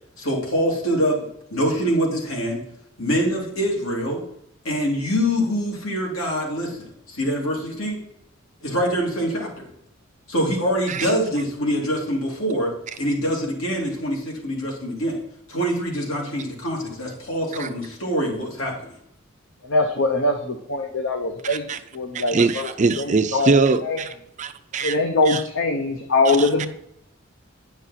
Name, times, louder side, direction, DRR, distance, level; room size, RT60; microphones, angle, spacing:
voice 1, 0.2-1.2 1.5-2.6 3.0-4.2 4.6-8.0 8.6-9.7 10.3-15.2 15.5-18.8, equal, 85° left, -2 dB, 2.8 m, -24 dB
voice 2, 19.6-21.6 21.9-22.7 23.0-23.5 23.8-24.0 24.8-26.7, left 2 dB, 65° left, 4 dB, 0.8 m, -22 dB
voice 3, 21.4-21.8 22.1-25.0 25.3-25.4 26.3-26.7, right 4 dB, 35° right, 10 dB, 0.5 m, -23 dB
9.7 x 6.2 x 4.2 m, 0.75 s
head